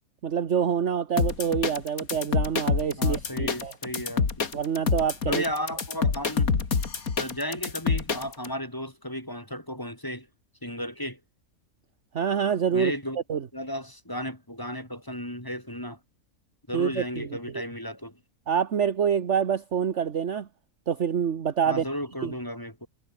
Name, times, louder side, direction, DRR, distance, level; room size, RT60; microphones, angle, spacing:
voice 1, 0.2-3.7 4.5-5.4 12.1-12.9 13.3-13.4 16.7-17.3 18.5-20.5 20.9-21.8 22.2-22.3, right 7 dB, 55° right, 1.5 m, -26 dB
sound 1, 1.2-8.5, left 5 dB, 80° left, 2.6 m, -26 dB
voice 2, 3.0-4.5 5.2-6.5 7.2-10.3 10.6-11.2 12.7-13.2 13.5-16.0 16.7-18.2 21.6-22.9, equal, 15° left, 5.1 m, -34 dB
omnidirectional pair, 1.5 m